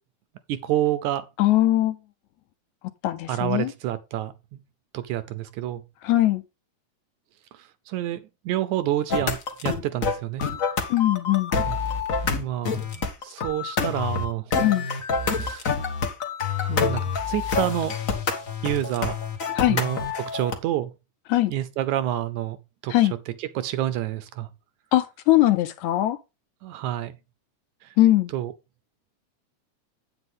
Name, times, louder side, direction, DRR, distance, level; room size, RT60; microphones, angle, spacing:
voice 1, 0.5-1.3 3.3-4.6 4.9-5.8 7.5-10.5 11.6-11.8 12.2-14.6 15.4-15.7 16.7-18.0 18.6-19.2 19.7-20.9 21.5-22.6 22.8-23.0 23.3-24.5 26.6-27.1 27.8-27.9 28.3-28.5, right 13 dB, 75° right, 1.9 m, -28 dB
voice 2, 1.4-2.0 3.0-3.7 6.0-6.4 10.9-11.5 14.6-14.9 19.6-19.8 21.3-21.5 22.9-23.1 24.9-26.2 28.0-28.3, left 15 dB, 75° left, 1.8 m, -20 dB
sound 1, 9.1-20.5, left 5 dB, 60° left, 0.8 m, -27 dB
8.8 x 8.2 x 3.6 m
omnidirectional pair, 3.7 m